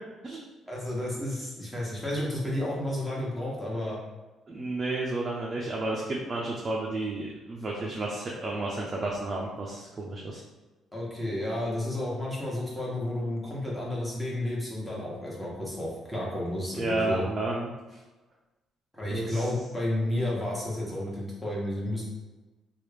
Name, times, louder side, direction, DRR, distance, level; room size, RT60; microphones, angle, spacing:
voice 1, 0.7-4.0 10.9-17.2 18.9-22.0, left 1 dB, 10° left, -5 dB, 1.3 m, -31 dB
voice 2, 4.5-10.4 16.8-18.0 19.1-19.5, right 2 dB, 40° right, -3 dB, 0.5 m, -32 dB
3.0 x 2.4 x 3.3 m, 1.2 s
cardioid pair, 80°, 0 cm